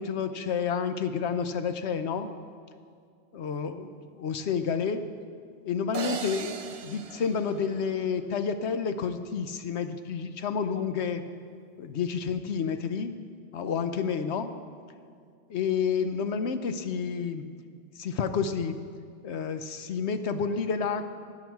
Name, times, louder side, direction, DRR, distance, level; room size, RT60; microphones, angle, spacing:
voice 1, 0.0-2.3 3.3-5.1 5.6-11.2 11.8-13.1 13.5-14.5 15.5-17.4 18.0-18.8 19.2-21.1, left 6 dB, 70° left, 9 dB, 1.0 m, -30 dB
sound 1, 5.9-8.3, right 6 dB, 55° right, 0.4 m, -38 dB
16.5 x 9.8 x 4.6 m, 2.1 s
omnidirectional pair, 1.2 m